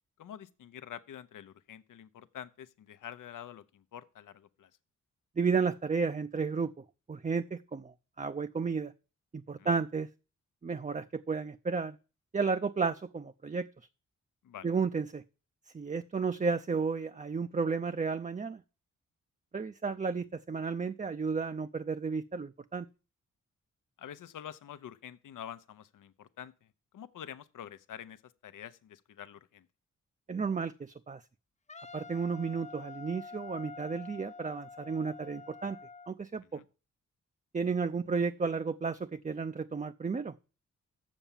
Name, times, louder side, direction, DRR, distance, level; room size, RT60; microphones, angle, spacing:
voice 1, 0.2-4.7 9.6-9.7 14.4-14.7 24.0-29.7 36.5-36.7, left 9 dB, 75° left, 0.8 m, -47 dB
voice 2, 5.4-6.7 7.1-8.9 9.3-10.1 10.6-12.0 12.3-13.7 14.6-15.2 15.7-18.6 19.5-22.9 30.3-31.2 31.9-35.8 36.1-36.6 37.5-40.3, right 5 dB, 25° right, 0.6 m, -32 dB
Wind instrument woodwind instrument, 31.7-36.1, left 4 dB, 20° left, 0.5 m, -47 dB
7.2 x 6.9 x 7.3 m
supercardioid pair, 50°, 32 cm